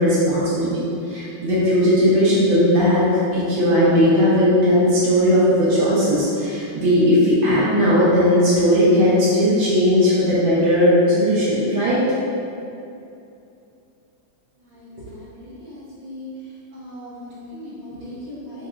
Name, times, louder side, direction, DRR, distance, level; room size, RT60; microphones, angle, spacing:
voice 1, 0.0-3.1 3.3-12.0, equal, 90° right, -10 dB, 1.7 m, -17 dB
voice 2, 14.6-16.3 16.7-18.7, left 1 dB, 70° right, -9 dB, 1.5 m, -38 dB
6.8 x 2.5 x 2.3 m, 2.6 s
omnidirectional pair, 2.3 m